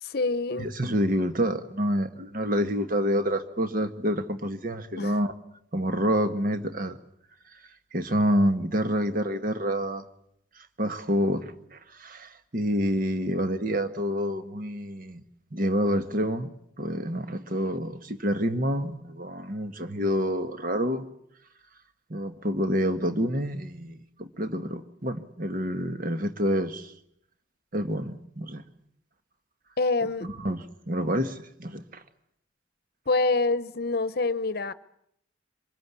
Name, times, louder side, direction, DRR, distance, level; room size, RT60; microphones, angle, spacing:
voice 1, 0.0-0.7 5.0-5.2 29.8-30.3 33.1-34.7, left 3 dB, 55° left, 0.9 m, -26 dB
voice 2, 0.6-5.3 5.7-7.0 7.9-10.0 10.6-15.2 15.5-16.5 16.8-21.0 22.1-26.9 27.7-28.6 30.2-32.0, equal, 45° right, 1.6 m, -28 dB
24.5 x 22.0 x 8.3 m
head